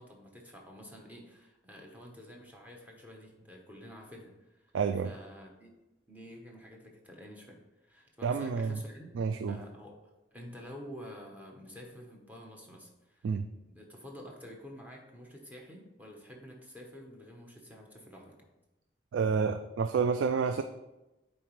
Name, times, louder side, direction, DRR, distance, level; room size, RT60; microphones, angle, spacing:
voice 1, 0.0-4.7 5.0-5.7 6.1-9.1 9.5-13.3 13.7-18.5, equal, 10° right, 0 dB, 1.0 m, -49 dB
voice 2, 4.7-5.1 8.2-8.8 9.1-9.6 13.2-13.5 19.1-20.6, right 5 dB, 90° right, 8 dB, 0.3 m, -29 dB
9.1 x 4.1 x 3.1 m, 1.0 s
head